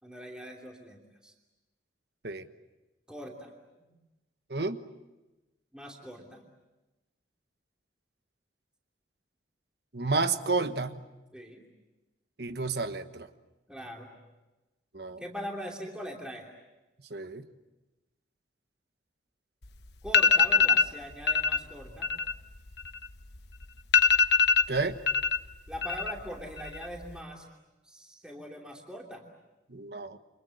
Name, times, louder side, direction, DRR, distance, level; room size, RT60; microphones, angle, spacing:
voice 1, 0.0-1.3 3.1-3.5 5.7-6.4 11.3-11.6 13.7-14.1 15.2-16.5 20.0-22.1 25.7-27.5 27.9-29.2, equal, 5° right, 0 dB, 2.9 m, -41 dB
voice 2, 9.9-11.0 12.4-13.3 14.9-15.2 17.1-17.4 24.7-25.0 29.7-30.2, right 3 dB, 60° right, 10 dB, 1.3 m, -31 dB
sound 1, 19.6-19.7 20.1-20.9 21.3-21.6 21.9-23.4 23.6-23.7 23.9-25.4 25.7-26.3 26.6-27.1, left 5 dB, 65° left, 1.1 m, -23 dB
29.0 x 26.0 x 7.9 m, 1.1 s
head